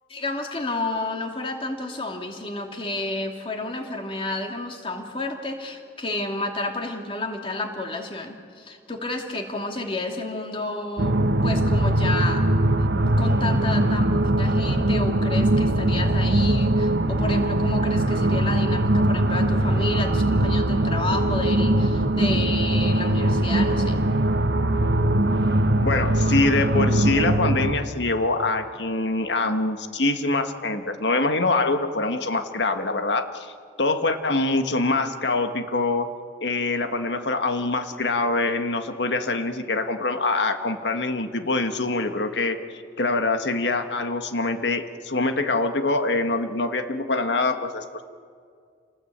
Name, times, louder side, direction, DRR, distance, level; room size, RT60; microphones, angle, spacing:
voice 1, 0.1-11.2 11.4-12.4 12.8-12.9 13.2-24.0, left 2 dB, 30° left, 3 dB, 2.6 m, -31 dB
sound 1, 11.0-27.7, right 1 dB, 90° right, 1.3 m, -21 dB
voice 2, 25.8-33.5 33.8-36.1 36.4-42.6 43.0-48.0, left 3 dB, 90° left, 7 dB, 1.6 m, -24 dB
27.5 x 19.5 x 8.8 m, 2.2 s
head